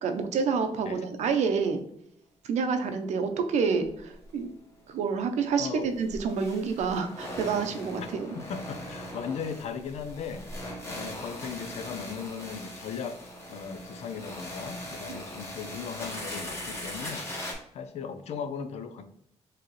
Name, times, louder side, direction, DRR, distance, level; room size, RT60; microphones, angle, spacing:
voice 1, 0.0-1.8 2.5-4.5 4.9-8.3, right 5 dB, 75° right, 7 dB, 0.7 m, -28 dB
sound 1, 3.8-4.0 4.2-4.3 5.9-17.5, left 1 dB, 20° left, 1.4 m, -40 dB
voice 2, 8.3-13.2 13.5-17.2 17.7-19.0, left 6 dB, 65° left, 9 dB, 0.6 m, -37 dB
4.8 x 3.0 x 3.1 m, 0.70 s
cardioid pair, 165°, 12 cm